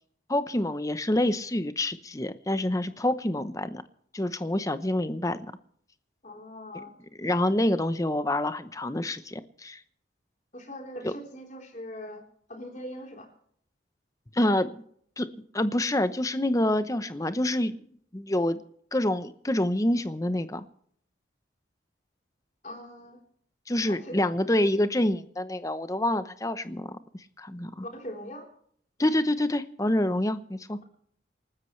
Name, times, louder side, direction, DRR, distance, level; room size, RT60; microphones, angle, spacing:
voice 1, 0.3-3.8 4.1-5.4 7.2-9.8 11.0-11.1 14.3-14.8 15.2-15.3 15.5-17.7 18.1-18.6 18.9-20.6 23.7-26.9 27.4-27.8 29.0-30.8, left 1 dB, 15° left, 12 dB, 0.8 m, -27 dB
voice 2, 6.2-6.9 10.5-12.2 12.5-13.3 22.6-23.2 23.8-24.2 27.8-28.5, equal, 40° left, 2 dB, 3.8 m, -41 dB
27.5 x 13.5 x 3.2 m, 0.63 s
head